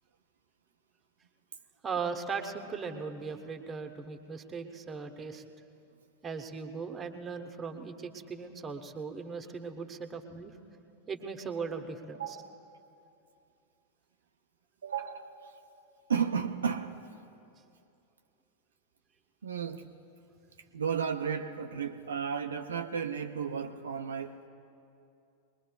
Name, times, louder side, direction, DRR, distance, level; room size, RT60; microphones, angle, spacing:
voice 1, 1.8-5.4 6.2-10.5 11.1-12.4, right 5 dB, 20° right, 4 dB, 1.1 m, -38 dB
voice 2, 12.1-12.6 14.8-15.5 16.1-17.1 19.4-20.0 20.7-24.5, right 7 dB, 70° right, 6 dB, 0.5 m, -34 dB
23.5 x 20.5 x 2.3 m, 2.7 s
figure-of-eight pair, 90°, 0 cm